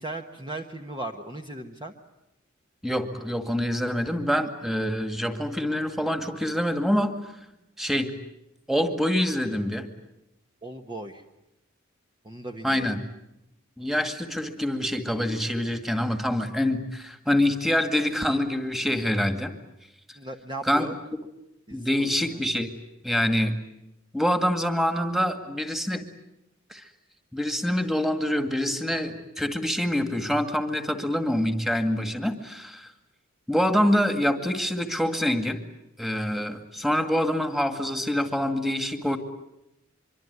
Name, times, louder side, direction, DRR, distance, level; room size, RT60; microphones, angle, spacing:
voice 1, 0.0-1.9 10.6-11.2 12.2-12.9 20.2-20.9 21.7-22.4, right 2 dB, 25° right, 3 dB, 1.3 m, -37 dB
voice 2, 2.8-7.2 7.8-8.1 8.7-9.9 12.6-13.0 13.8-19.5 20.6-20.9 21.7-22.7 23.0-23.6 24.1-26.1 26.7-26.9 27.3-32.9 33.5-35.6 36.0-39.2, equal, ahead, 7 dB, 2.1 m, -25 dB
24.5 x 24.5 x 9.5 m, 0.86 s
head